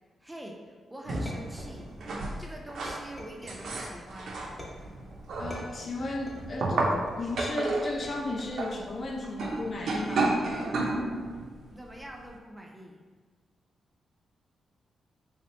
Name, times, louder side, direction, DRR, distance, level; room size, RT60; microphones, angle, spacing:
voice 1, 0.2-1.9 2.4-4.4 11.7-13.0, right 1 dB, 10° right, 0 dB, 0.4 m, -44 dB
sound 1, 1.1-3.0 3.5-11.5 12.0-12.1, right 2 dB, 75° right, 0.5 m, -31 dB
sound 2, 1.3-2.2 2.9-3.8 4.6-5.0 5.5-6.6 7.1-7.5 8.0-8.7 9.4-9.9, left 1 dB, 20° left, 0.9 m, -46 dB
voice 2, 5.4-6.8 7.1-10.3, left 2 dB, 45° left, 1 dB, 0.5 m, -34 dB
3.3 x 2.8 x 3.2 m, 1.5 s
cardioid pair, 95°, 0 cm